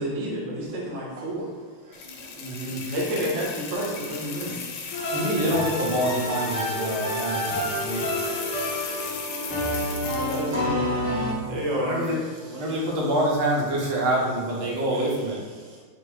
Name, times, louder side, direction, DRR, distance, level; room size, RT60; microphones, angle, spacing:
voice 1, 0.0-1.5 2.9-4.6 9.1-9.9 10.2-12.1, equal, 50° right, -3 dB, 1.0 m, -30 dB
voice 2, 1.8-2.9 3.8-3.9 4.2-5.1 6.8-11.5 12.1-13.0 14.9-15.8, right 1 dB, 30° right, -6 dB, 0.6 m, -45 dB
sound 1, 1.9-10.6, left 5 dB, 90° left, 1.6 m, -36 dB
voice 3, 2.4-2.8 5.1-8.0 11.8-12.2 12.5-15.4, right 1 dB, 80° right, -4 dB, 1.8 m, -26 dB
sound 2, 4.9-11.3, equal, 45° left, 1.1 m, -29 dB
5.1 x 2.1 x 4.6 m, 1.5 s
omnidirectional pair, 2.3 m